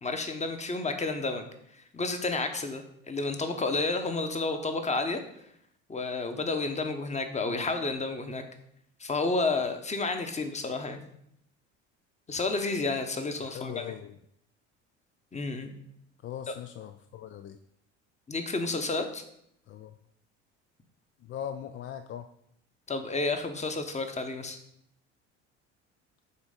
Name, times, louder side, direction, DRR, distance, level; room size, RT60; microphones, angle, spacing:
voice 1, 0.0-1.5 1.9-5.2 5.9-8.4 9.0-11.0 12.3-13.8 15.3-15.7 18.3-19.2 22.9-24.6, left 3 dB, 20° left, 7 dB, 1.0 m, -31 dB
voice 2, 7.4-7.7 13.4-14.2 16.2-17.6 19.7-19.9 21.2-22.3, left 10 dB, 35° left, 9 dB, 0.4 m, -40 dB
8.0 x 3.1 x 5.2 m, 0.73 s
hypercardioid pair, 70°, 35 cm